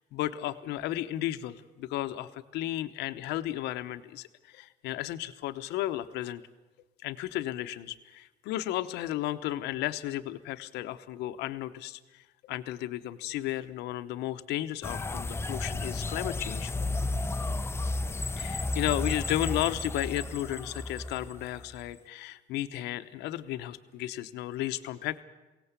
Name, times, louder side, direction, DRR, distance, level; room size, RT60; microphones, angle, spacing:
voice 1, 0.0-4.3 4.5-6.4 7.0-12.0 12.4-16.7 18.4-25.2, left 14 dB, 90° left, 10 dB, 1.0 m, -34 dB
sound 1, 14.8-21.9, left 2 dB, 15° left, 0.6 m, -33 dB
22.5 x 17.5 x 8.2 m, 1.1 s
cardioid pair, 110°, 17 cm